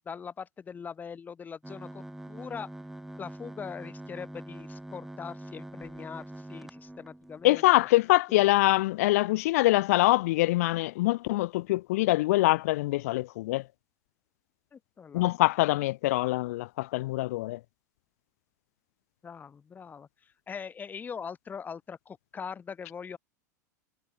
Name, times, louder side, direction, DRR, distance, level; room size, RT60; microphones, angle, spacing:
voice 1, 0.0-2.7 3.2-7.6 14.7-15.3 19.2-23.2, left 6 dB, 20° left, 0.6 m, -41 dB
sound 1, 1.6-7.5, right 1 dB, 5° right, 1.8 m, -44 dB
voice 2, 7.4-13.7 15.1-17.6, left 18 dB, 55° left, 0.3 m, -24 dB
figure-of-eight pair, 85°, 10 cm